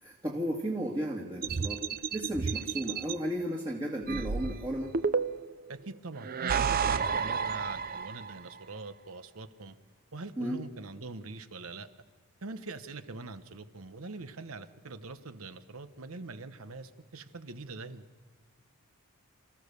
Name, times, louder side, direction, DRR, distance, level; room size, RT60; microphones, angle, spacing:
voice 1, 0.0-1.8 2.1-4.9 10.4-10.6, equal, 20° right, -2 dB, 1.9 m, -34 dB
sound 1, 1.4-3.1 4.1-5.6 6.2-8.4, right 6 dB, 40° right, 0.5 m, -31 dB
voice 2, 5.7-9.8 10.1-11.9 12.4-18.0, right 3 dB, 65° right, 11 dB, 1.1 m, -43 dB
28.0 x 14.5 x 6.8 m, 1.5 s
head